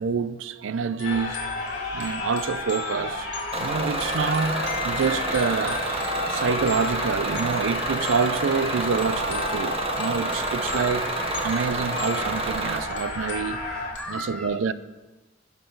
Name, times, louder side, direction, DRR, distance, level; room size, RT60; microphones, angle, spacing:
voice 1, 0.0-1.5 1.9-3.3 3.6-6.0 6.3-11.1 11.4-13.6 14.1-14.7, right 5 dB, 85° right, 0.4 m, -27 dB
sound 1, 1.0-14.0, left 5 dB, 65° left, 2.0 m, -39 dB
sound 2, 1.0-13.9, left 2 dB, 40° left, 3.4 m, -32 dB
Bus / Engine, 3.5-12.8, right 2 dB, 30° right, 0.9 m, -29 dB
voice 2, 4.3-4.7 13.7-14.6, left 1 dB, 5° left, 1.1 m, -38 dB
17.5 x 6.0 x 3.9 m
head